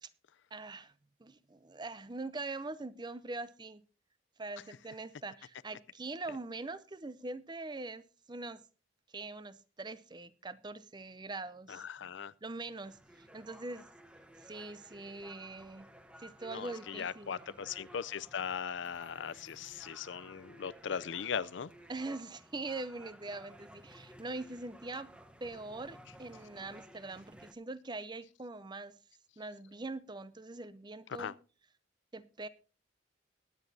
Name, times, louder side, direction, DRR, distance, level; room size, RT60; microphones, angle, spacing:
voice 1, 0.5-0.9 1.2-3.8 4.4-8.0 8.3-8.6 9.1-11.8 12.4-13.0 13.3-13.9 14.4-15.9 16.2-17.4 21.9-25.1 25.4-28.9 29.4-31.3 32.1-32.5, right 3 dB, 25° right, 0.6 m, -42 dB
voice 2, 11.7-12.3 16.5-21.7 31.2-31.3, left 7 dB, 70° left, 0.5 m, -39 dB
sound 1, 12.8-27.5, equal, 5° right, 0.9 m, -56 dB
21.0 x 9.4 x 2.7 m
head